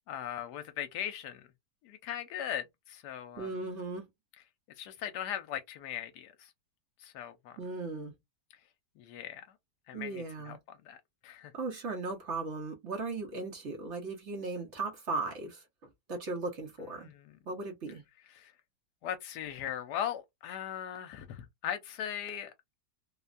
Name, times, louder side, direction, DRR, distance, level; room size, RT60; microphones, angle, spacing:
voice 1, 0.1-1.5 1.8-3.6 4.8-6.5 7.0-7.6 9.0-9.5 9.9-11.0 11.2-11.5 17.0-17.4 18.3-18.5 19.0-22.5, left 10 dB, 70° left, 1.1 m, -39 dB
voice 2, 3.4-4.0 7.6-8.1 9.9-10.6 11.5-15.6 16.1-17.1 17.5-18.0, right 3 dB, 55° right, 0.8 m, -37 dB
3.0 x 2.2 x 2.4 m
omnidirectional pair, 1.9 m